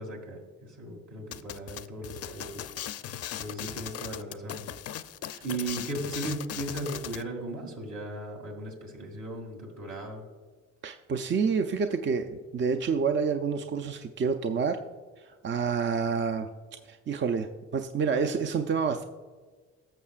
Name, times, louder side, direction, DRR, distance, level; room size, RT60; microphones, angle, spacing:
voice 1, 0.0-2.7 3.4-4.6 5.4-10.2, right 2 dB, 65° right, 0 dB, 2.6 m, -37 dB
sound 1, 1.3-7.2, left 10 dB, 55° left, 0.5 m, -38 dB
voice 2, 10.8-14.8 15.2-16.5 16.8-19.0, right 5 dB, 40° right, 6 dB, 0.5 m, -28 dB
14.5 x 6.6 x 2.4 m, 1.4 s
cardioid pair, 90°, 30 cm